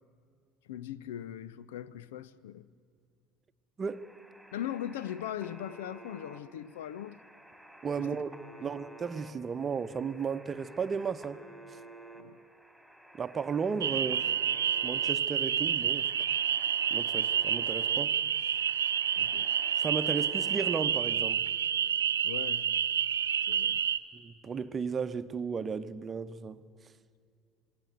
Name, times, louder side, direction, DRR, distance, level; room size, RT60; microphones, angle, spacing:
voice 1, 0.7-2.6 4.5-7.2 8.0-8.2 12.1-12.4 17.9-18.0 19.2-19.5 22.2-22.7 23.5-23.8, left 11 dB, 65° left, 0.6 m, -40 dB
sound 1, 3.9-20.8, right 1 dB, 5° left, 3.5 m, -52 dB
voice 2, 7.8-8.3 8.6-11.4 13.2-14.3 14.8-16.1 16.9-18.1 19.8-21.5 24.1-26.6, right 5 dB, 30° right, 0.9 m, -34 dB
sound 2, 13.8-24.0, right 9 dB, 75° right, 0.6 m, -29 dB
27.0 x 20.0 x 7.9 m
figure-of-eight pair, 60°, 0 cm